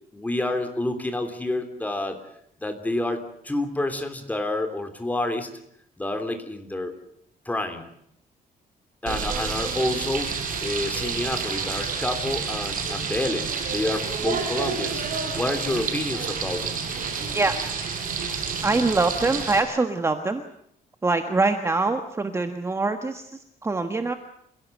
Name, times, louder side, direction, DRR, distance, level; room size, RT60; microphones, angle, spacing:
voice 1, 0.1-2.2 2.6-5.5 6.0-6.9 7.4-7.9 9.0-16.8, left 1 dB, 10° left, 6 dB, 3.3 m, -29 dB
Frying (food), 9.1-19.6, right 5 dB, 60° right, 5.9 m, -29 dB
voice 2, 18.6-20.4 21.0-24.1, right 3 dB, 15° right, 7 dB, 1.4 m, -24 dB
28.5 x 16.5 x 8.1 m, 0.71 s
cardioid pair, 150°, 16 cm